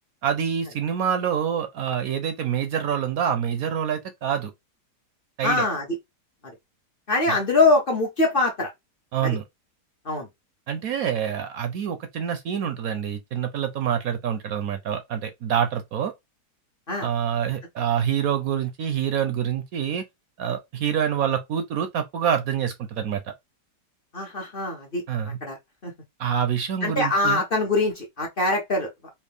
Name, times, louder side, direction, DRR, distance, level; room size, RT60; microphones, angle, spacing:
voice 1, 0.2-4.5 5.4-5.6 9.1-9.4 10.7-16.1 17.0-20.0 20.4-23.2 25.1-25.4 26.2-27.4, right 8 dB, 65° right, 1.0 m, -26 dB
voice 2, 5.4-5.8 7.1-8.7 9.2-9.4 10.0-10.3 16.9-17.1 24.1-25.0 25.4-25.6 25.8-25.9 26.8-28.9, left 2 dB, 40° left, 0.9 m, -23 dB
4.4 x 2.4 x 3.3 m
omnidirectional pair, 1.8 m